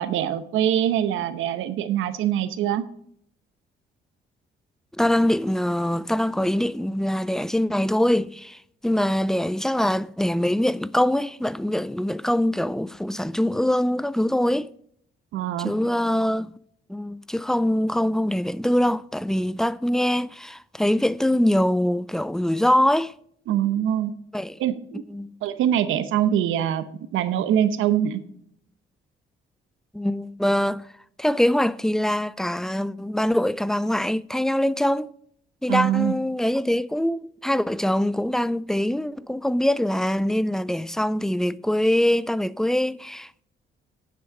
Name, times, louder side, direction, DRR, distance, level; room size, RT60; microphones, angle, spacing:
voice 1, 0.0-2.8 15.3-15.7 23.5-24.1 24.6-25.0 25.4-26.8 27.1-28.2 35.7-36.1, right 10 dB, 90° right, 0.9 m, -23 dB
voice 2, 5.0-14.7 15.6-16.5 16.9-23.1 24.3-24.6 25.1-25.3 29.9-30.9 31.2-35.1 35.6-43.4, left 1 dB, ahead, 0.3 m, -23 dB
10.0 x 6.3 x 5.0 m
cardioid pair, 90°, 20 cm